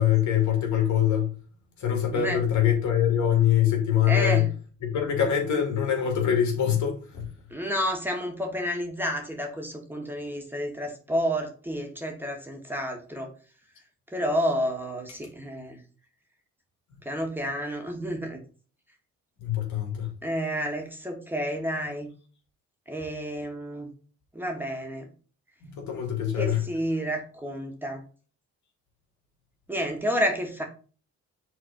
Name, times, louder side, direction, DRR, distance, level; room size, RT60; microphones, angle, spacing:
voice 1, 0.0-1.3 1.8-4.5 4.8-7.3 19.4-20.1 25.6-26.6, left 9 dB, 70° left, 2.6 m, -24 dB
voice 2, 4.1-4.5 7.5-13.3 14.1-15.8 17.1-18.4 20.2-22.1 22.9-23.9 24.3-25.1 26.4-28.0 29.7-30.6, equal, 5° right, 2.2 m, -30 dB
6.1 x 4.1 x 5.3 m
cardioid pair, 90°, 30 cm